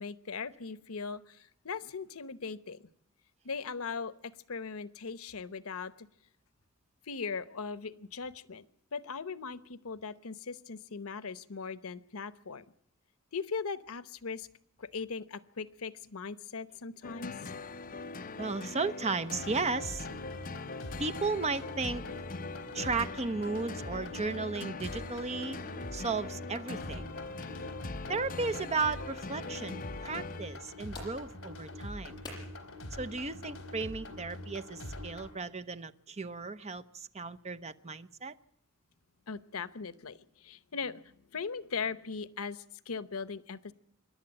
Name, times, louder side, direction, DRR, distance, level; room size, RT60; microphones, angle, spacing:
voice 1, 0.0-2.8 3.4-6.1 7.1-8.6 8.9-12.6 13.3-14.5 14.8-17.5 39.3-43.7, left 5 dB, 85° left, 15 dB, 0.9 m, -39 dB
sound 1, 17.0-30.8, left 3 dB, 40° left, 0.8 m, -42 dB
voice 2, 18.4-20.1 21.0-22.0 22.7-25.6 25.9-27.1 28.1-32.1 33.0-38.3, right 4 dB, 30° right, 11 dB, 0.8 m, -35 dB
sound 2, 19.3-35.3, left 1 dB, 65° left, 3.8 m, -44 dB
sound 3, 30.4-35.5, left 2 dB, 20° left, 7.9 m, -53 dB
26.0 x 11.5 x 8.8 m, 0.73 s
head